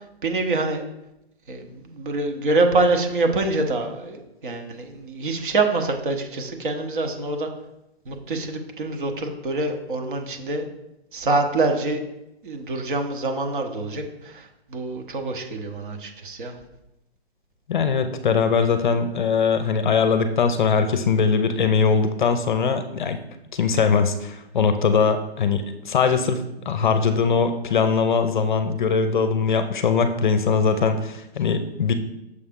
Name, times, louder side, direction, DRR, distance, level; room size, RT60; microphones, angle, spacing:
voice 1, 0.2-0.8 1.5-7.5 8.1-10.6 11.1-12.0 12.4-16.5, right 2 dB, 50° right, 4 dB, 1.1 m, -25 dB
voice 2, 17.7-23.2 23.5-31.9, left 5 dB, 50° left, 9 dB, 0.6 m, -21 dB
6.6 x 5.4 x 3.6 m, 0.87 s
hypercardioid pair, 165°, 32 cm